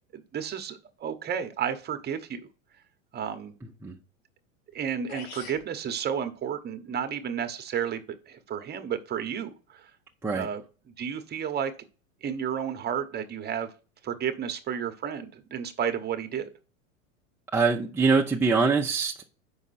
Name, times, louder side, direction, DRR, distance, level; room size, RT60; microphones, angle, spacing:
voice 1, 0.1-2.4 3.1-3.5 4.7-8.0 8.3-9.9 10.3-10.6 11.0-11.7 12.2-13.7 14.0-16.5, right 8 dB, 25° right, 8 dB, 1.0 m, -32 dB
sound 1, 4.7-4.8 5.1-5.7, left 5 dB, 45° left, 1.5 m, -42 dB
voice 2, 17.5-19.2, right 4 dB, 5° right, -2 dB, 0.6 m, -23 dB
7.0 x 5.6 x 4.1 m, 0.36 s
hypercardioid pair, 110°, 39 cm